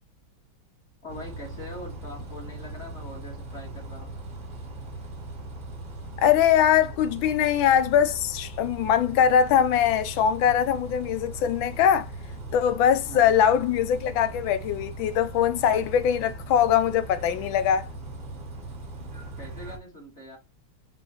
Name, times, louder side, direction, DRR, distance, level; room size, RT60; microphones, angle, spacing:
voice 1, 1.0-4.2 13.0-13.4 19.4-20.4, left 1 dB, 35° left, 2.0 m, -42 dB
Bus, 1.1-19.8, right 2 dB, 50° right, 0.6 m, -39 dB
voice 2, 6.2-12.1 12.5-17.9, left 9 dB, 80° left, 1.4 m, -22 dB
5.0 x 3.6 x 2.9 m
omnidirectional pair, 2.2 m